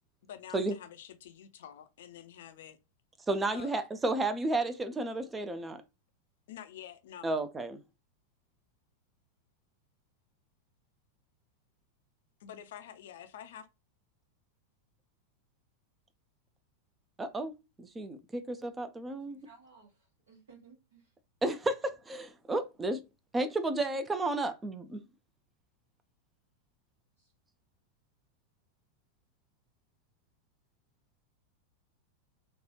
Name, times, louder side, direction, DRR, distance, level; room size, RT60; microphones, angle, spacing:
voice 1, 0.2-2.8 3.5-3.9 6.5-7.4 12.4-13.7, left 10 dB, 55° left, 0.4 m, -48 dB
voice 2, 3.3-5.8 7.2-7.8 17.2-17.5 17.8-19.5 21.4-23.0 23.3-25.0, right 2 dB, 15° right, 0.4 m, -32 dB
voice 3, 19.3-21.1 27.2-27.3, right 5 dB, 60° right, 0.9 m, -59 dB
3.2 x 2.2 x 2.8 m
figure-of-eight pair, 90°, 0 cm